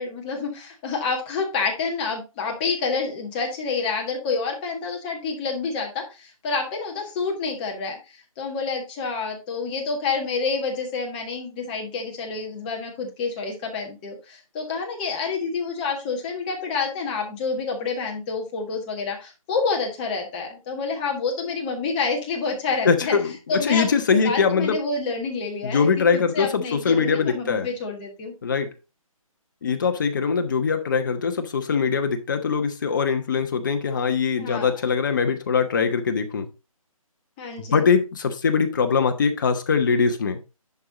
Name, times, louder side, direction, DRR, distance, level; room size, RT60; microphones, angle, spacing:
voice 1, 0.0-23.1 23.5-28.3 34.4-34.7 37.4-37.9, left 4 dB, 15° left, 1.6 m, -28 dB
voice 2, 22.8-24.8 25.6-27.7 28.4-28.7 29.6-36.5 37.6-40.4, left 5 dB, 35° left, 1.1 m, -22 dB
11.0 x 4.7 x 3.9 m
figure-of-eight pair, 165°, 18 cm